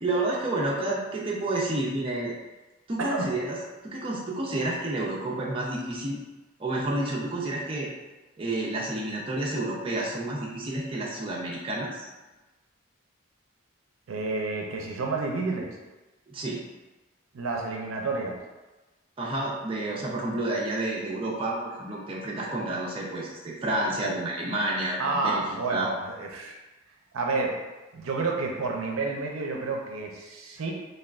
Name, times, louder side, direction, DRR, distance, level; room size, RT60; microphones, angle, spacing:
voice 1, 0.0-2.3 2.9-3.6 3.8-6.2 6.6-7.9 8.4-12.1 16.3-16.6 19.2-25.4 25.7-25.9, right 2 dB, 25° right, -4 dB, 0.4 m, -30 dB
voice 2, 3.0-3.3 14.1-15.8 17.3-18.4 25.0-26.6 27.1-27.5 27.9-30.7, right 3 dB, 75° right, 0 dB, 0.5 m, -30 dB
3.3 x 2.3 x 2.3 m, 1.1 s
head